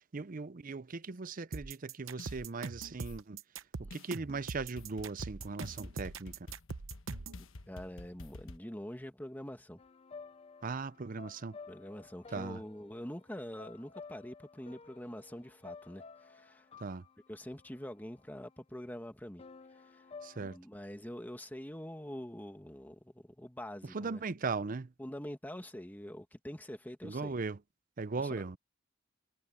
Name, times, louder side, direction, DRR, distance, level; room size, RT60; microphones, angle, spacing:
voice 1, 0.0-3.4 3.8-6.4 10.6-11.6 12.3-12.6 16.8-17.0 20.2-20.6 23.8-24.9 27.0-27.6 28.0-28.6, right 4 dB, 45° right, 0.6 m, -38 dB
sound 1, 1.5-7.4, right 4 dB, 85° right, 0.8 m, -42 dB
sound 2, 2.2-2.4 3.1-3.2 3.9-4.1 4.8-8.6, left 2 dB, 90° left, 1.2 m, -49 dB
voice 2, 7.7-9.8 11.7-16.7 17.3-19.4 19.7-20.1 20.4-24.2 25.0-27.3 28.2-28.3, equal, 10° left, 1.8 m, -45 dB
sound 3, 9.8-18.6 19.4-20.6, left 4 dB, 30° left, 0.5 m, -53 dB
head